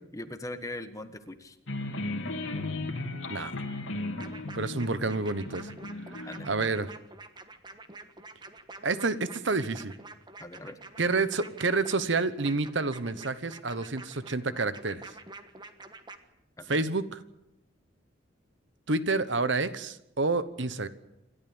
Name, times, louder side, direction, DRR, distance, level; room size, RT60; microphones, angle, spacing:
voice 1, 0.1-1.6 6.3-6.5 10.4-10.8 16.6-16.8, left 1 dB, 15° left, 9 dB, 1.3 m, -40 dB
sound 1, 1.7-6.6, left 2 dB, 75° left, 2.6 m, -36 dB
sound 2, 4.2-16.2, right 3 dB, 20° right, 1.4 m, -47 dB
voice 2, 4.5-5.7 6.1-6.9 8.8-9.9 11.0-15.1 16.7-17.0 18.9-20.9, right 3 dB, 65° right, 14 dB, 1.1 m, -29 dB
27.5 x 13.0 x 8.9 m, 0.86 s
head